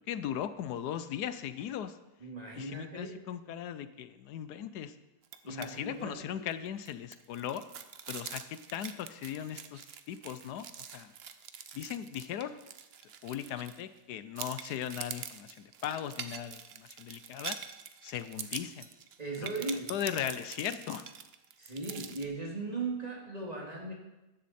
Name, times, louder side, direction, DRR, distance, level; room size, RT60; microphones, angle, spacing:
voice 1, 0.1-2.0 2.6-5.0 5.4-7.6 8.1-11.1 11.7-12.6 13.2-17.6 18.0-18.9 19.4-19.5 19.9-21.1, left 10 dB, 80° left, 12 dB, 1.2 m, -38 dB
voice 2, 2.2-3.2 5.4-6.5 19.2-20.3 21.6-23.9, right 3 dB, 25° right, -1 dB, 2.3 m, -38 dB
sound 1, 5.2-5.7 6.0-6.1 6.5-14.0 14.4-22.3, right 8 dB, 55° right, 0.7 m, -45 dB
14.0 x 10.5 x 4.2 m, 1.0 s
omnidirectional pair, 1.7 m